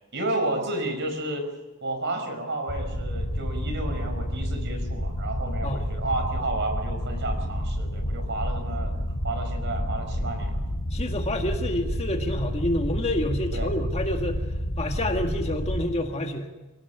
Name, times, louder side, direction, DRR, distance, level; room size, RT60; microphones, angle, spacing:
voice 1, 0.1-1.5 1.8-8.9 9.2-10.6 13.5-13.7, right 2 dB, 55° right, 6 dB, 5.2 m, -31 dB
sound 1, 2.7-15.9, equal, 60° left, 5.8 m, -30 dB
voice 2, 10.9-14.4 14.8-16.5, left 1 dB, 30° left, 4 dB, 1.8 m, -28 dB
26.5 x 17.0 x 6.0 m, 1.2 s
head